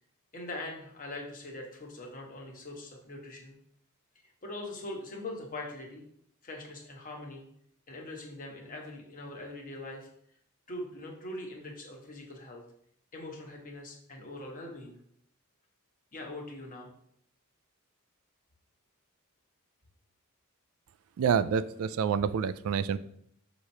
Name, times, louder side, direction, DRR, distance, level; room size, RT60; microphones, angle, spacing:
voice 1, 0.3-3.5 4.4-6.0 6.4-7.4 7.9-10.1 10.7-12.6 13.1-14.9 16.1-16.9, left 2 dB, 40° left, 0 dB, 1.4 m, -42 dB
voice 2, 21.2-23.0, right 7 dB, 75° right, 14 dB, 0.3 m, -27 dB
6.5 x 3.0 x 5.5 m, 0.68 s
head